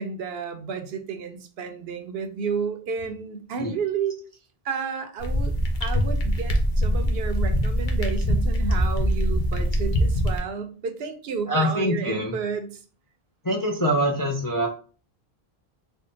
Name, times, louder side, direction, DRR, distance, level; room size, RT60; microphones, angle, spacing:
voice 1, 0.0-4.2 4.6-5.5 5.8-12.7, right 6 dB, 75° right, 6 dB, 0.8 m, -31 dB
sound 1, 5.2-10.4, equal, 55° left, 0.8 m, -23 dB
voice 2, 11.5-12.4 13.4-14.7, equal, 35° left, -2 dB, 0.3 m, -24 dB
3.5 x 2.1 x 3.8 m, 0.40 s
omnidirectional pair, 1.0 m